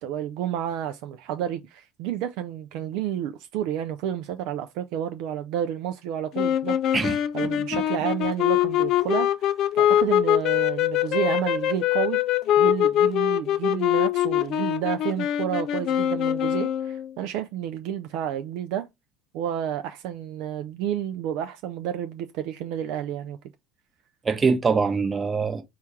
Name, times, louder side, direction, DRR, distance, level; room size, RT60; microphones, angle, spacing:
voice 1, 0.0-7.0 7.3-12.2 12.6-18.9 19.3-23.4, right 10 dB, 60° right, 0.3 m, -30 dB
sound 1, 6.3-17.1, left 11 dB, 50° left, 0.4 m, -23 dB
voice 2, 6.9-7.8 24.2-25.6, right 5 dB, 25° right, 0.8 m, -24 dB
4.3 x 2.4 x 4.3 m
figure-of-eight pair, 70°, 0 cm